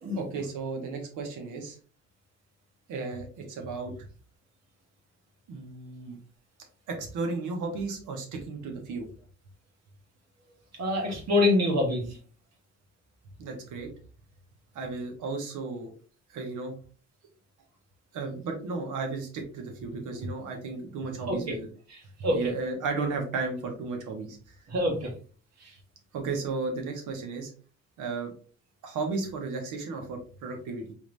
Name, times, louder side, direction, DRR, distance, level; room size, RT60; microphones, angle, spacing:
voice 1, 0.1-1.8 2.9-4.0 5.5-6.2 6.9-9.1 13.4-13.9 14.7-15.9 16.3-16.7 18.1-21.7 22.3-24.6 25.0-25.1 26.1-27.5 28.0-28.3 28.8-30.8, right 4 dB, 85° right, 3 dB, 1.3 m, -34 dB
voice 2, 10.7-12.0 21.3-21.6 21.9-22.4 24.7-25.1 25.6-25.7, left 2 dB, 60° right, 1 dB, 1.7 m, -26 dB
3.6 x 3.2 x 3.2 m, 0.40 s
cardioid pair, 90°, 30 cm